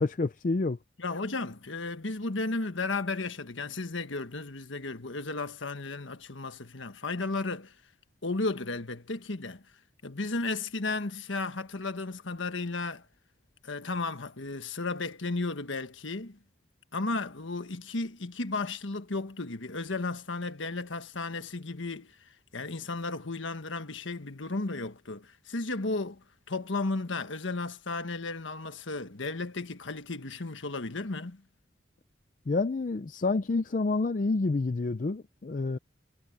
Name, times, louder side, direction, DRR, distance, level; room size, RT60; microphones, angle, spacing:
voice 1, 0.0-0.8 32.5-35.8, left 3 dB, 40° left, 0.4 m, -28 dB
voice 2, 1.0-7.7 8.2-9.6 10.0-13.0 13.6-16.4 16.9-31.4, left 3 dB, 80° left, 1.5 m, -34 dB
head